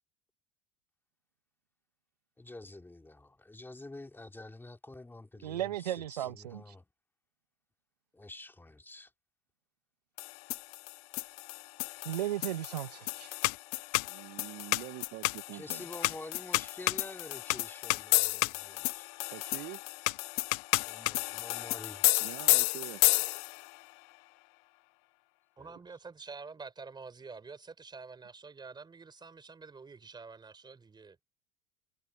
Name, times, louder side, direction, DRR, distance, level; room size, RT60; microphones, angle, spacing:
voice 1, 2.4-6.8 8.1-9.1 15.5-19.1 20.9-22.1 25.6-25.8, left 2 dB, 10° left, 2.6 m, -48 dB
voice 2, 5.4-6.7 12.0-13.3, right 12 dB, 85° right, 1.3 m, -35 dB
sound 1, 10.2-23.7, left 32 dB, 65° left, 0.4 m, -31 dB
voice 3, 14.1-15.9 19.3-19.8 22.2-23.0, right 24 dB, 60° right, 1.0 m, -45 dB
voice 4, 25.6-31.2, right 4 dB, 20° right, 4.1 m, -48 dB
hypercardioid pair, 75°, 20 cm